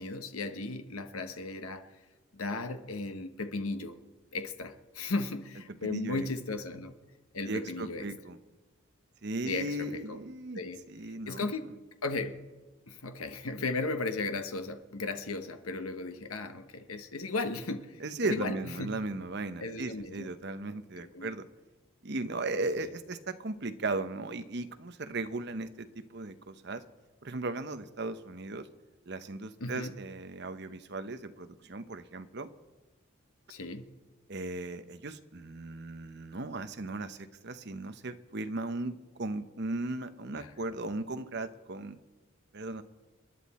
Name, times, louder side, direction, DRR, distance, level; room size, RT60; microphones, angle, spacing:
voice 1, 0.0-1.8 2.3-3.9 4.3-6.9 7.3-8.0 9.4-10.0 10.5-10.8 11.3-11.7 12.0-12.4 12.9-18.0 18.3-18.9 19.6-20.3 21.0-21.3 22.8-22.9 29.6-29.9 33.5-33.9 40.3-40.8, left 3 dB, 90° left, 8 dB, 1.1 m, -36 dB
voice 2, 5.8-6.3 7.5-8.4 9.2-10.6 10.9-11.5 18.0-21.5 22.0-26.8 27.2-28.7 29.1-32.5 34.3-42.0 42.5-42.8, right 2 dB, 50° right, 10 dB, 0.8 m, -37 dB
27.5 x 10.5 x 4.3 m, 1.2 s
head